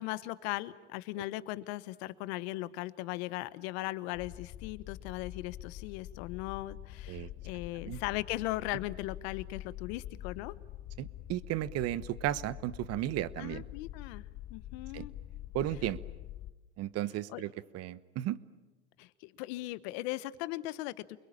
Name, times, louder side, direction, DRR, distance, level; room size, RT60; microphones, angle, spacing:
voice 1, 0.0-10.5 13.4-14.2 14.5-15.1 17.3-17.4 19.0-21.2, left 17 dB, 65° left, 16 dB, 1.2 m, -38 dB
sound 1, 4.1-16.5, left 13 dB, 45° left, 1.4 m, -46 dB
voice 2, 11.0-13.6 14.9-15.0 15.5-16.0 16.8-18.4, right 13 dB, 45° right, 17 dB, 1.1 m, -34 dB
29.0 x 22.0 x 8.7 m, 1.1 s
supercardioid pair, 110°, 35 cm